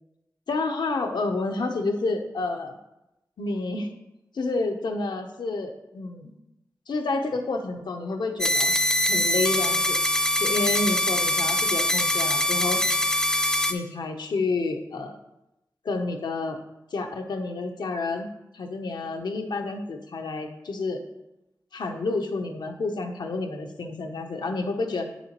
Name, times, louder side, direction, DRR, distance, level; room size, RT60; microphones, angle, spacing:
voice 1, 0.5-2.8 3.4-3.9 4.3-6.4 6.9-8.8 9.1-10.0 10.4-12.8 13.7-15.2 15.8-16.6 16.9-18.3 18.5-21.0 21.7-25.1, left 3 dB, 80° left, 4 dB, 0.8 m, -29 dB
sound 1, 8.4-13.7, left 1 dB, 10° left, 0.5 m, -23 dB
8.9 x 6.8 x 3.0 m, 0.91 s
wide cardioid pair, 130°, 7 cm